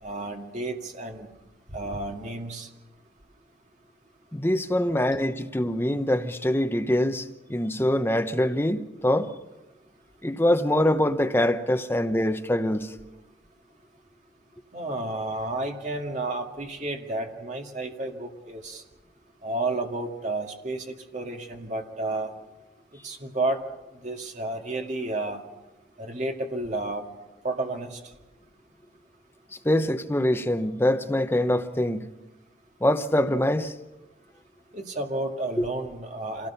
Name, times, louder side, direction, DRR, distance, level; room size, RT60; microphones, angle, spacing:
voice 1, 0.0-1.3 1.7-2.7 5.0-5.2 14.7-18.8 19.4-22.3 23.0-23.6 24.0-25.4 26.0-27.0 27.4-28.0 34.7-36.5, right 2 dB, 40° right, 2.1 m, -31 dB
voice 2, 4.3-9.3 10.2-12.9 29.6-32.1 32.8-33.7 35.6-35.7, left 1 dB, 10° left, 0.8 m, -24 dB
26.0 x 17.5 x 5.7 m
head